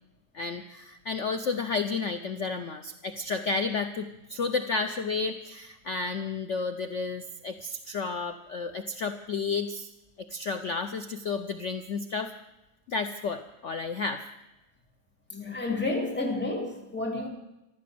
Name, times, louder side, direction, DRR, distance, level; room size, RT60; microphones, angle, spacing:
voice 1, 0.3-9.9 10.3-12.3 12.9-14.2, left 4 dB, 55° left, 8 dB, 0.9 m, -31 dB
voice 2, 15.3-17.3, left 2 dB, 5° left, -1 dB, 2.7 m, -30 dB
14.5 x 12.5 x 7.7 m, 0.92 s
omnidirectional pair, 1.9 m